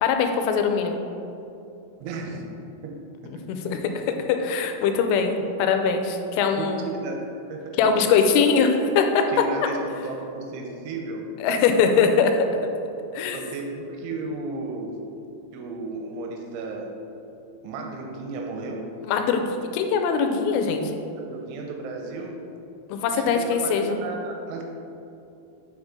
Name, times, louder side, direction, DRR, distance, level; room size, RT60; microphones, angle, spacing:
voice 1, 0.0-1.0 3.5-4.0 4.3-6.9 7.8-9.2 11.4-12.3 13.1-13.4 19.0-20.9 22.9-24.0, left 6 dB, 90° left, 5 dB, 3.1 m, -22 dB
voice 2, 2.0-2.5 2.8-3.1 3.4-3.5 6.6-7.2 7.5-7.9 9.3-11.3 13.3-15.0 15.5-17.0 17.6-18.9 21.3-22.5 23.2-24.6, right 3 dB, 85° right, 2 dB, 3.0 m, -34 dB
6.7 x 6.4 x 3.7 m, 2.8 s
omnidirectional pair, 5.6 m